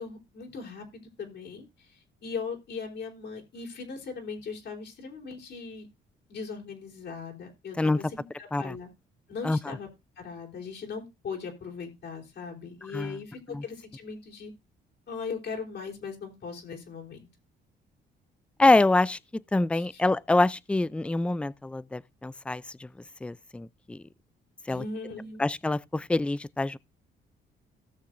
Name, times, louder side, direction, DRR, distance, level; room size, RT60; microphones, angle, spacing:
voice 1, 0.0-5.9 6.3-8.9 9.3-9.9 10.2-14.5 15.1-17.2 19.7-20.0 24.7-25.4, left 5 dB, 60° left, 3.8 m, -39 dB
voice 2, 9.4-9.8 12.9-13.2 13.5-13.6 18.6-19.2 19.5-22.9 23.2-24.0 24.7-24.8 25.4-26.8, left 2 dB, 5° left, 0.4 m, -25 dB
17.5 x 6.6 x 2.6 m
cardioid pair, 90°, 20 cm